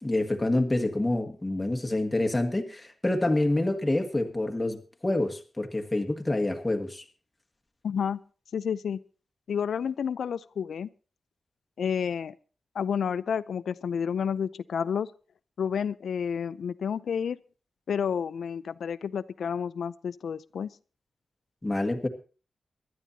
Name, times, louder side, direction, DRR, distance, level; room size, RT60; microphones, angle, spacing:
voice 1, 0.0-7.0 21.6-22.1, left 2 dB, 10° left, 4 dB, 1.8 m, -27 dB
voice 2, 7.8-8.2 8.5-9.0 9.5-10.9 11.8-12.3 12.8-15.1 15.6-17.4 17.9-20.7, left 7 dB, 85° left, 16 dB, 0.5 m, -30 dB
24.0 x 12.0 x 2.8 m, 0.36 s
wide cardioid pair, 160°, 0 cm